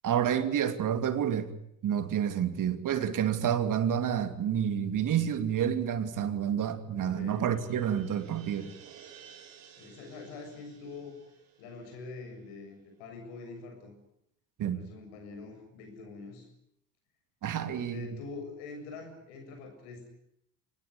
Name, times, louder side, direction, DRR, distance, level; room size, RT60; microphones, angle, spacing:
voice 1, 0.0-1.5 1.8-8.7 14.6-14.8 17.4-18.2, right 9 dB, 50° right, 2.7 m, -29 dB
sound 1, 6.3-12.8, right 8 dB, 75° right, 4.9 m, -55 dB
voice 2, 7.0-7.5 9.8-11.2 11.6-13.9 14.7-16.5 17.6-20.1, left 4 dB, 75° left, 7.3 m, -45 dB
25.0 x 19.5 x 9.8 m
hypercardioid pair, 55°, 40 cm